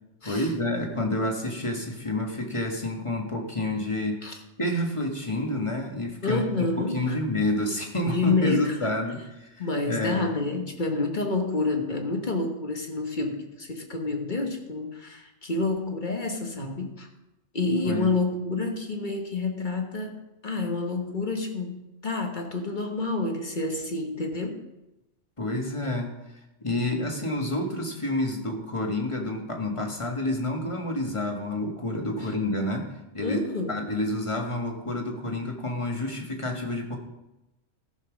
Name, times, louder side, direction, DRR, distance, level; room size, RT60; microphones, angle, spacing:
voice 1, 0.2-4.2 4.6-6.4 6.8-10.3 17.8-18.1 25.4-26.2 26.6-33.4 33.7-37.0, left 1 dB, 25° left, 2 dB, 1.5 m, -29 dB
voice 2, 6.2-7.2 8.0-8.8 9.6-17.1 17.5-24.6 33.2-33.7, left 3 dB, 45° left, 3 dB, 1.4 m, -28 dB
14.0 x 5.4 x 6.1 m, 0.96 s
omnidirectional pair, 1.2 m